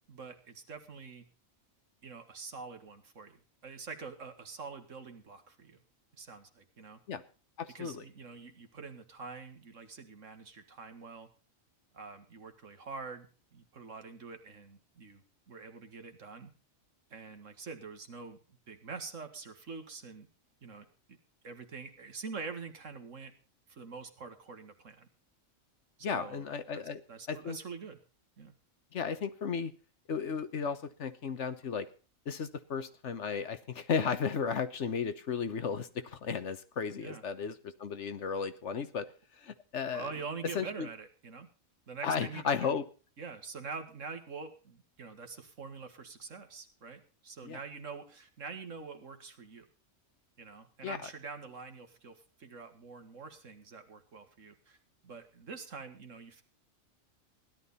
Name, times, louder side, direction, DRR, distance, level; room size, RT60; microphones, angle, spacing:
voice 1, 0.1-1.2 2.0-5.8 6.2-7.0 7.7-11.3 11.9-13.3 13.5-16.5 17.1-18.4 18.7-20.3 20.6-21.2 21.4-23.3 23.7-25.1 26.1-26.5 26.7-28.0 28.4-28.5 37.0-37.2 39.9-41.5 41.9-42.8 43.2-49.7 50.4-54.8 55.0-56.4, right 4 dB, 70° right, 7 dB, 2.0 m, -45 dB
voice 2, 7.6-8.0 26.0-27.0 27.3-27.6 28.9-29.7 30.1-31.9 32.3-39.1 39.4-40.1 40.5-40.9 42.0-42.8 47.4-47.6 50.8-51.0, left 6 dB, 60° left, 11 dB, 1.3 m, -34 dB
16.5 x 11.5 x 4.1 m, 0.35 s
omnidirectional pair, 1.4 m